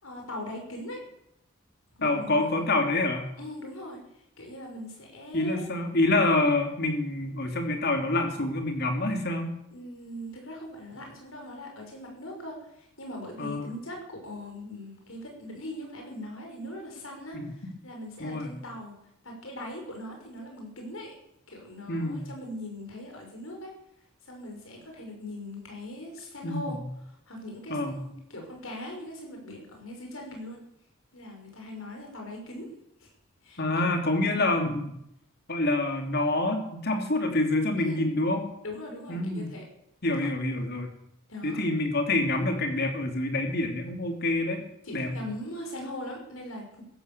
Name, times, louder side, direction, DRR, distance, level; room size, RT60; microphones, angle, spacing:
voice 1, 0.0-1.0 2.0-2.7 3.4-4.0 4.4-5.7 9.7-18.9 19.2-21.2 21.5-23.7 24.2-26.8 27.0-30.6 31.1-32.7 33.0-33.1 33.4-33.8 37.8-38.0 38.6-39.6 41.3-41.6 44.8-46.8, left 1 dB, 75° left, 2 dB, 5.9 m, -40 dB
voice 2, 2.0-3.3 5.3-9.5 13.4-13.7 17.3-17.5 18.2-18.5 21.9-22.3 26.4-26.8 27.7-28.0 33.6-34.9 35.5-38.4 39.1-39.5 40.0-40.9 41.4-44.6 44.9-45.1, left 2 dB, 50° left, 4 dB, 3.2 m, -27 dB
16.0 x 13.0 x 7.0 m, 0.78 s
head